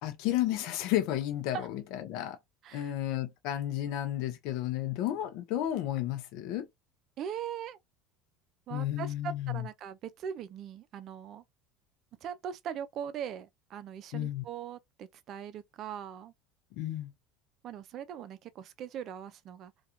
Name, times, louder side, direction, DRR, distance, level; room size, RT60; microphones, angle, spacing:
voice 1, 0.0-2.4 2.7-6.7 8.7-9.6 14.1-14.4 16.7-17.1, left 13 dB, 70° left, 0.5 m, -32 dB
voice 2, 7.2-7.8 8.7-11.4 12.2-16.3 17.6-19.7, right 8 dB, 50° right, 0.4 m, -40 dB
2.4 x 2.3 x 2.8 m
supercardioid pair, 100°, 0 cm